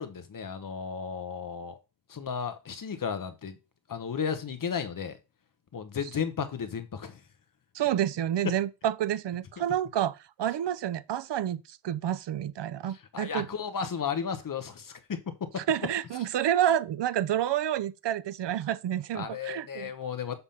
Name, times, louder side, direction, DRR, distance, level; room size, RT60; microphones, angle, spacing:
voice 1, 0.0-1.8 2.1-3.6 3.9-5.2 5.7-7.2 13.1-15.6 19.1-20.4, left 6 dB, 45° left, 1.0 m, -34 dB
voice 2, 7.7-13.5 15.6-19.9, right 11 dB, 70° right, 0.6 m, -29 dB
6.8 x 3.6 x 5.6 m
wide cardioid pair, 170°, 44 cm